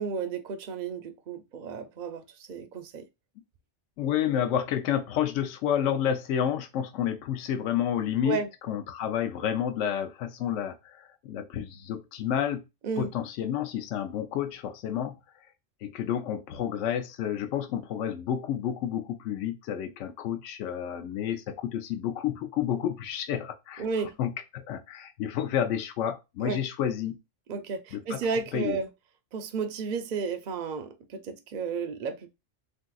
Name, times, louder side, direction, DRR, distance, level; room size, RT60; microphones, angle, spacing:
voice 1, 0.0-3.0 8.2-8.5 12.8-13.1 23.8-24.2 26.4-26.6 27.5-28.9 29.3-32.3, right 5 dB, 60° right, 0.5 m, -32 dB
voice 2, 4.0-8.4 8.7-12.6 13.0-15.1 15.8-23.9 24.2-27.2 27.9-28.2 28.5-28.8, left 9 dB, 80° left, 0.9 m, -30 dB
3.5 x 2.7 x 2.3 m
omnidirectional pair, 1.3 m